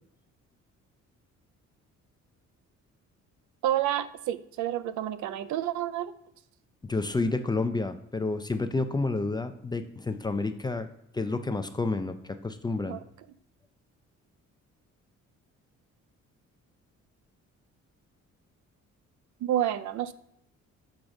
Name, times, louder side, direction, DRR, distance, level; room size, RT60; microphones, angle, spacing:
voice 1, 3.6-6.1 12.9-13.0 19.4-20.1, right 12 dB, 70° right, 0.5 m, -29 dB
voice 2, 6.8-10.9 11.1-13.0, left 3 dB, 15° left, 0.4 m, -30 dB
6.4 x 3.0 x 5.1 m
cardioid pair, 90°, 30 cm